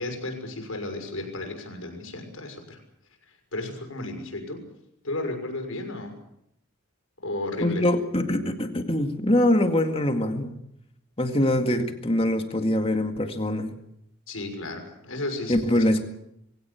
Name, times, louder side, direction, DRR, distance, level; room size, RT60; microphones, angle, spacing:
voice 1, 0.0-2.8 3.5-4.7 5.0-6.2 7.2-7.9 14.3-15.8, left 2 dB, 70° left, 4 dB, 6.1 m, -33 dB
voice 2, 7.6-10.6 11.2-13.7 15.5-16.0, left 1 dB, 25° left, 6 dB, 2.0 m, -23 dB
22.5 x 17.0 x 8.5 m, 0.78 s
head